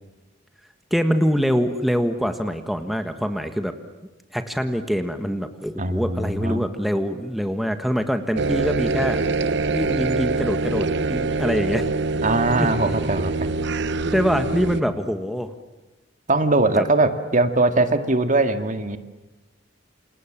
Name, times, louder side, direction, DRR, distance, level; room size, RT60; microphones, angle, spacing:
voice 1, 0.9-3.7 4.3-9.2 9.6-11.9 12.6-12.7 14.1-15.5 16.7-16.8, equal, ahead, 7 dB, 1.5 m, -24 dB
voice 2, 5.8-6.6 12.2-13.5 16.3-19.0, right 2 dB, 40° right, 8 dB, 2.0 m, -21 dB
sound 1, 8.4-14.8, right 3 dB, 65° right, 0.9 m, -24 dB
28.5 x 28.0 x 7.5 m, 1.1 s
head